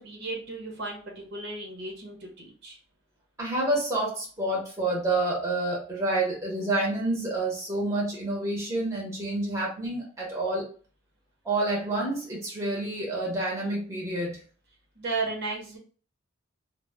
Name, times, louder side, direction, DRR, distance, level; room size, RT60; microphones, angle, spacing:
voice 1, 0.0-2.8 15.0-15.8, right 3 dB, 55° right, 0 dB, 0.7 m, -34 dB
voice 2, 3.4-10.7 11.4-14.4, right 2 dB, 15° right, -3 dB, 0.7 m, -28 dB
2.1 x 2.0 x 3.3 m, 0.40 s
head